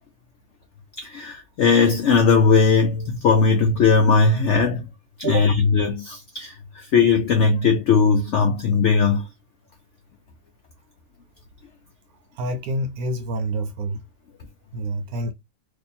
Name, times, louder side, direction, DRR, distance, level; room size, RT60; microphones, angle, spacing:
voice 1, 1.0-4.9 5.2-9.3, left 5 dB, 85° left, 0.6 m, -18 dB
voice 2, 12.4-14.0 14.7-15.3, right 1 dB, 70° right, 1.0 m, -27 dB
2.7 x 2.6 x 4.2 m
omnidirectional pair, 1.8 m